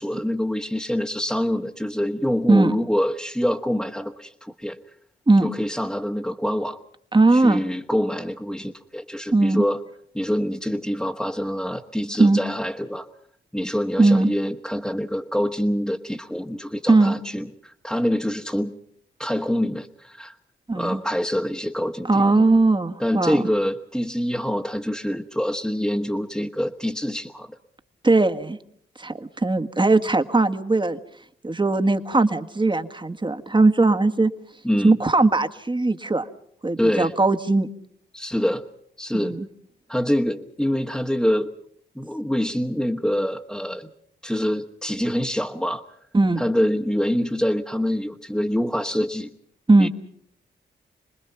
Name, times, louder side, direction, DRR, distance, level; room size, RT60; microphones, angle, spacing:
voice 1, 0.0-4.8 5.4-6.8 7.3-9.8 10.1-13.1 13.5-18.7 19.2-20.3 20.7-22.2 23.0-27.6 34.6-35.0 36.8-37.1 38.1-38.6 39.0-39.4 39.9-41.5 41.9-43.9 44.2-45.8 46.4-49.3 49.8-49.9, equal, 5° left, 1 dB, 1.4 m, -25 dB
voice 2, 7.1-7.6 9.3-9.6 12.2-12.4 14.0-14.3 16.9-17.1 20.7-21.0 22.1-23.4 28.0-28.6 29.0-31.0 31.4-34.3 34.8-36.2 36.6-37.7 39.1-39.5 46.1-46.4 49.7-49.9, right 2 dB, 25° right, 8 dB, 1.7 m, -19 dB
27.5 x 20.0 x 5.8 m, 0.66 s
supercardioid pair, 50°, 20 cm